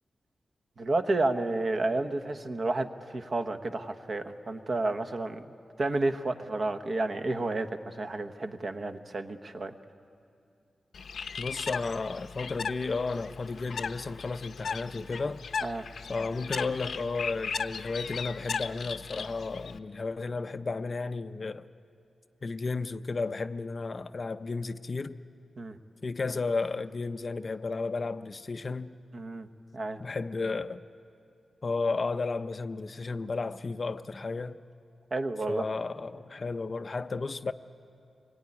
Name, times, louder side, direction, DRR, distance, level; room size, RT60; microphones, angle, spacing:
voice 1, 0.8-5.5 5.8-9.7 15.6-15.8 25.6-25.8 29.1-29.5 29.7-30.0 35.1-35.6, right 2 dB, 40° right, 1.1 m, -31 dB
Bird, 10.9-19.8, left 5 dB, 75° left, 0.8 m, -37 dB
voice 2, 11.4-15.4 16.1-21.7 22.4-25.2 26.0-29.0 30.0-30.8 31.6-34.6 35.5-37.5, left 4 dB, 35° left, 0.6 m, -33 dB
25.0 x 22.5 x 9.9 m
wide cardioid pair, 165°, 0 cm